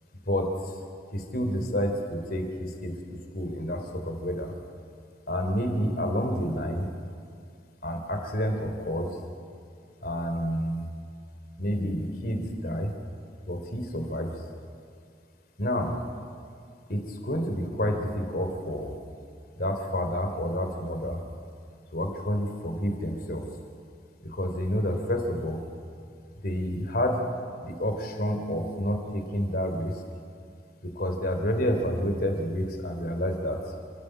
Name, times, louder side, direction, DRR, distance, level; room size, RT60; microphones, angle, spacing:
voice 1, 1.1-2.9 3.3-4.5 5.3-6.9 7.8-9.1 10.0-10.8 11.6-12.9 13.5-14.3 15.6-16.0 16.9-19.0 19.6-21.2 21.9-23.4 24.2-25.6 26.4-27.3 27.6-30.0 30.8-33.6, equal, 55° left, 5 dB, 3.2 m, -29 dB
29.0 x 14.5 x 7.8 m, 2.3 s
head